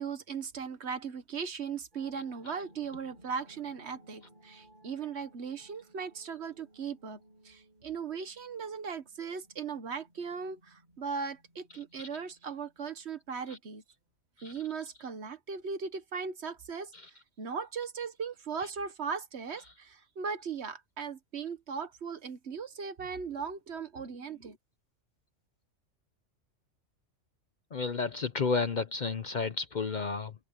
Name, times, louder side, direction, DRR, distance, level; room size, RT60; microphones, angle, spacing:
voice 1, 0.0-7.2 7.4-13.8 14.4-24.6, right 6 dB, 60° right, 1.5 m, -38 dB
sound 1, 1.9-12.9, right 1 dB, 40° right, 7.0 m, -61 dB
voice 2, 27.7-30.3, left 4 dB, 45° left, 0.8 m, -32 dB
omnidirectional pair, 1.3 m